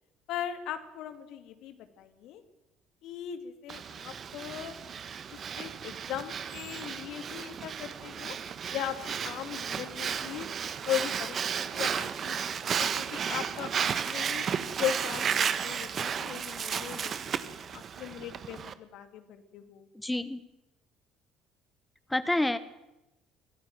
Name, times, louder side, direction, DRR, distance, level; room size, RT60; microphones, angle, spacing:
voice 1, 0.3-2.4 3.0-4.8 5.5-8.3 8.7-10.5 10.8-14.5 14.8-19.9, left 10 dB, 60° left, 9 dB, 2.5 m, -38 dB
Breathing, 3.7-18.7, right 7 dB, 45° right, 1.5 m, -33 dB
voice 2, 20.0-20.4 22.1-22.6, left 1 dB, 10° left, 13 dB, 1.3 m, -28 dB
24.0 x 16.0 x 9.5 m, 0.96 s
figure-of-eight pair, 55°, 0 cm